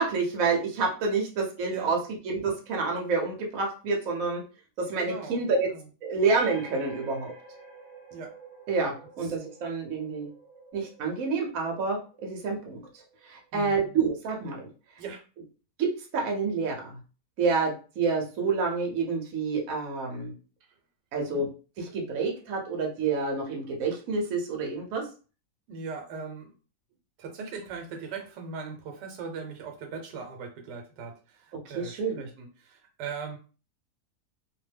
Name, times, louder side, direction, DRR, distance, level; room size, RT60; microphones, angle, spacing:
voice 1, 0.0-2.0 2.2-4.4 4.8-5.7 6.0-7.3 8.7-10.3 10.7-12.9 13.2-14.7 15.8-17.0 17.4-20.3 21.1-21.5 21.8-25.1 31.6-32.3, right 4 dB, 60° right, 0 dB, 1.2 m, -28 dB
voice 2, 5.0-5.8 8.1-8.3 13.5-13.9 15.0-15.2 21.1-21.5 25.7-26.5 27.2-33.4, right 5 dB, 85° right, 4 dB, 1.3 m, -39 dB
sound 1, 6.2-13.5, right 1 dB, 5° left, 0.8 m, -49 dB
2.9 x 2.1 x 3.3 m, 0.35 s
omnidirectional pair, 1.8 m